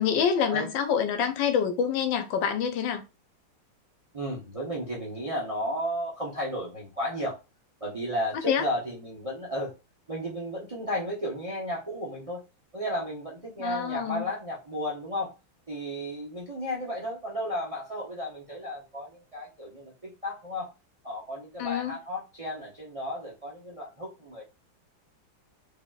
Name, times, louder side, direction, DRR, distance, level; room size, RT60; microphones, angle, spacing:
voice 1, 0.0-3.0 8.5-8.6 13.6-14.3 21.6-21.9, left 7 dB, 70° left, 1.2 m, -26 dB
voice 2, 4.1-7.4 7.8-9.7 10.1-12.4 12.7-15.3 15.7-20.7 21.0-24.4, equal, 40° right, 0.4 m, -33 dB
4.8 x 2.9 x 2.4 m
omnidirectional pair, 2.3 m